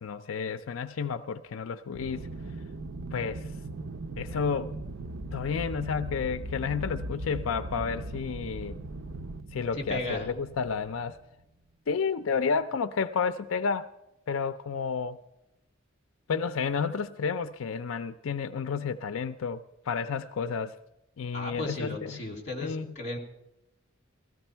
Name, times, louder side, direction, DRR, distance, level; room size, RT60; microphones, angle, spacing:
voice 1, 0.0-2.3 3.1-3.5 4.2-4.7 5.3-8.8 9.5-11.2 11.9-13.9 14.3-15.2 16.3-20.8 21.2-22.2 22.6-22.9, left 5 dB, 85° left, 12 dB, 0.5 m, -31 dB
Aircraft, 1.9-11.4, right 1 dB, 75° right, 0.6 m, -39 dB
voice 2, 9.7-10.3 21.3-23.2, left 2 dB, 35° left, 2 dB, 2.6 m, -35 dB
17.0 x 14.0 x 4.5 m, 0.92 s
head